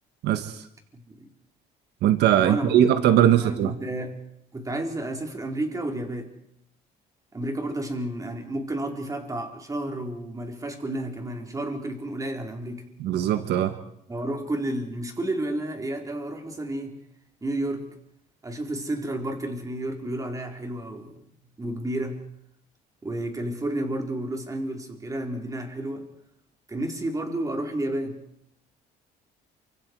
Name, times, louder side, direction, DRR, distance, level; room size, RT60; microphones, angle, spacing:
voice 1, 0.2-0.6 2.0-3.7 13.0-13.8, right 11 dB, 80° right, 10 dB, 1.5 m, -20 dB
voice 2, 2.3-4.2 4.5-6.3 7.3-12.9 14.1-17.0 17.4-17.9 18.4-21.2 21.6-22.2 23.0-26.1 26.7-28.2, right 1 dB, 20° right, 3 dB, 4.3 m, -31 dB
28.5 x 25.5 x 4.8 m, 0.73 s
cardioid pair, 110°, 17 cm